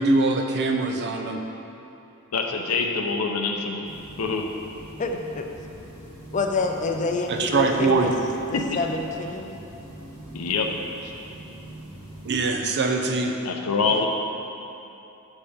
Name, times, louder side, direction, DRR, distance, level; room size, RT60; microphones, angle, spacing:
voice 1, 0.0-1.4 7.3-8.1 12.2-13.3, right 3 dB, 50° right, 3 dB, 0.5 m, -22 dB
voice 2, 2.3-3.9 4.2-4.4 8.5-8.6 10.3-10.7 11.0-11.1 13.4-14.1, left 4 dB, 75° left, 2 dB, 0.7 m, -25 dB
sound 1, 3.8-12.6, right 1 dB, 25° right, 1.4 m, -43 dB
voice 3, 5.0-5.5 6.3-8.1 8.5-9.5 13.9-14.1, left 3 dB, 35° left, 3 dB, 0.5 m, -28 dB
7.0 x 4.4 x 5.0 m, 3.0 s
head